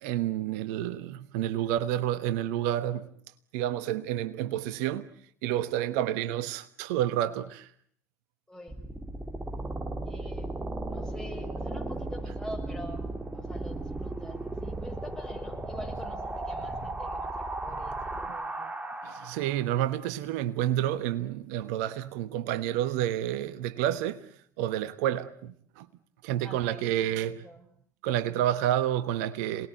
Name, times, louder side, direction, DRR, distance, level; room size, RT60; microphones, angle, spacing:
voice 1, 0.0-3.1 3.5-5.1 5.4-7.7 19.0-24.2 24.6-25.9 26.2-27.4 28.0-29.7, right 12 dB, 65° right, 1.2 m, -29 dB
voice 2, 8.5-8.8 10.1-10.5 10.9-13.1 13.3-18.7 26.4-27.7, left 1 dB, 10° left, 7.2 m, -46 dB
sound 1, 8.7-19.6, right 2 dB, 15° right, 3.1 m, -36 dB
28.0 x 20.0 x 9.2 m
hypercardioid pair, 65°, 9 cm